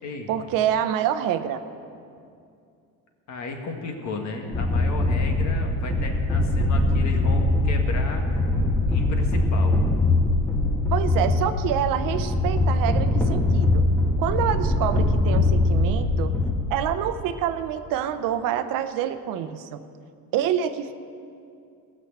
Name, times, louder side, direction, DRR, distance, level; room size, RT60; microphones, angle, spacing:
voice 1, 0.3-1.6 10.9-13.8 14.2-16.4 16.7-19.8 20.3-20.9, right 10 dB, 65° right, 10 dB, 0.8 m, -26 dB
voice 2, 3.3-8.5 8.9-9.8, left 3 dB, 50° left, 3 dB, 1.7 m, -34 dB
sound 1, 4.5-16.6, left 2 dB, 5° left, 1.4 m, -22 dB
16.0 x 6.3 x 7.9 m, 2.4 s
cardioid pair, 135°, 36 cm